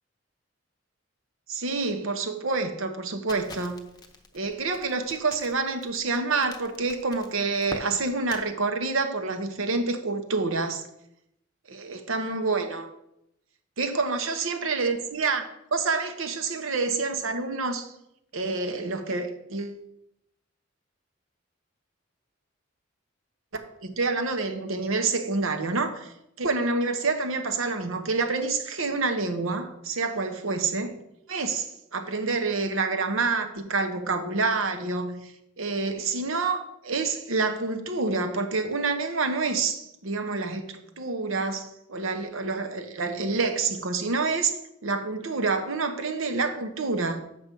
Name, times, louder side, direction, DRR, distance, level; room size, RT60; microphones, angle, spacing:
voice 1, 1.5-3.8 4.3-10.8 11.7-12.9 13.8-17.9 18.3-19.8 23.5-31.0 31.3-47.2, right 3 dB, 80° right, 1.0 m, -28 dB
Crackle, 3.3-8.4, left 2 dB, 20° left, 0.7 m, -44 dB
7.4 x 6.1 x 5.3 m
head